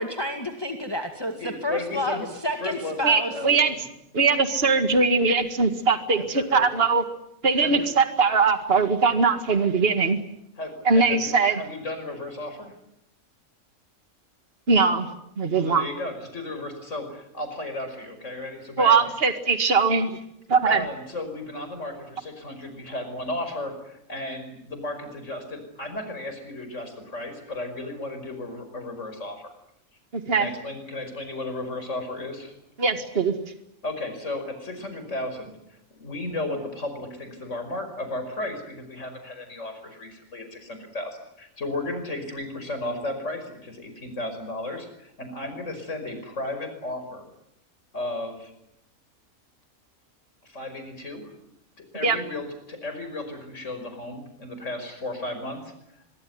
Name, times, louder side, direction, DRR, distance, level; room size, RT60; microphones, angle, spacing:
voice 1, 0.0-1.3 1.6-2.2 2.4-3.3, left 1 dB, 15° left, 4 dB, 2.1 m, -29 dB
voice 2, 1.4-2.3 2.6-3.0 3.3-3.8 6.2-6.7 7.6-7.9 10.6-12.7 15.5-19.1 20.6-29.5 30.3-32.5 33.8-47.2 47.9-48.5 50.4-51.3 51.9-56.2, left 2 dB, 55° left, 7 dB, 5.8 m, -34 dB
voice 3, 3.0-3.7 4.1-7.0 7.4-10.2 10.9-11.6 14.7-15.1 15.4-15.8 18.8-20.2 20.5-20.8 30.1-30.5 32.8-33.4 52.0-52.2, right 4 dB, 45° right, 9 dB, 2.1 m, -21 dB
24.0 x 23.0 x 9.5 m, 0.80 s
omnidirectional pair, 1.5 m